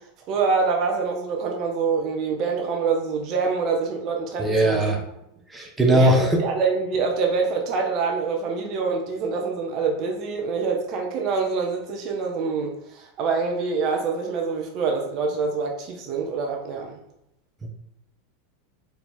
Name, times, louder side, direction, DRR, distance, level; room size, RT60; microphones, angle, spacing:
voice 1, 0.3-5.0 5.9-17.0, right 4 dB, 45° right, 2 dB, 0.7 m, -25 dB
voice 2, 4.4-5.0 5.5-6.4 17.6-17.7, right 1 dB, 10° right, 0 dB, 0.8 m, -19 dB
4.2 x 2.8 x 3.7 m, 0.80 s
figure-of-eight pair, 85°, 0 cm